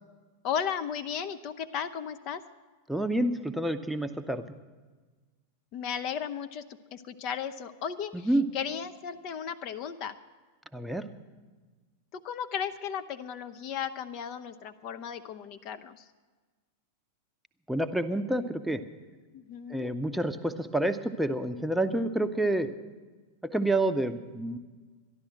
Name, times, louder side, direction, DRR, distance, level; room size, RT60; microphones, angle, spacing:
voice 1, 0.4-2.4 5.7-6.6 6.9-10.2 12.1-16.1 19.3-19.9, left 8 dB, 40° left, 10 dB, 0.6 m, -35 dB
voice 2, 2.9-4.4 8.1-8.4 10.7-11.1 17.7-18.8 19.7-22.7 23.4-24.6, right 1 dB, ahead, 8 dB, 0.7 m, -28 dB
12.5 x 11.5 x 7.7 m, 1.4 s
figure-of-eight pair, 90°, 0 cm